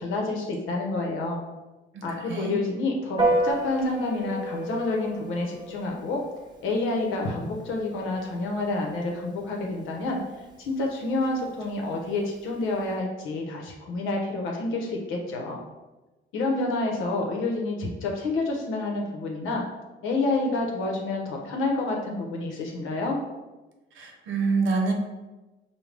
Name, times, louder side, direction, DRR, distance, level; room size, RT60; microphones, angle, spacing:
voice 1, 0.0-1.4 2.0-6.2 6.6-10.2 10.6-15.6 16.3-19.6 20.0-23.2, left 2 dB, 90° left, 0 dB, 0.8 m, -28 dB
voice 2, 1.9-2.6 23.9-24.9, right 4 dB, 75° right, 3 dB, 0.7 m, -27 dB
Piano, 3.2-12.9, right 1 dB, 20° right, 0.8 m, -33 dB
4.9 x 2.2 x 3.3 m, 1.1 s
cardioid pair, 90°, 20 cm